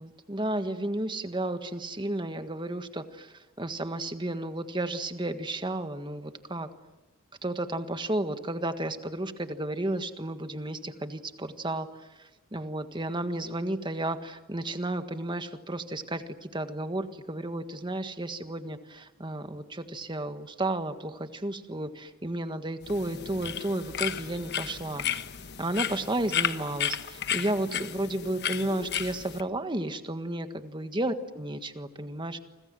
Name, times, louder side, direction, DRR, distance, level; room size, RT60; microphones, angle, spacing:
voice 1, 0.0-6.7 7.4-11.9 12.2-25.0 25.6-32.4, right 1 dB, 20° right, 9 dB, 1.6 m, -33 dB
sound 1, 22.8-29.4, left 9 dB, 50° left, 1.2 m, -33 dB
29.0 x 25.5 x 7.8 m, 1.1 s
head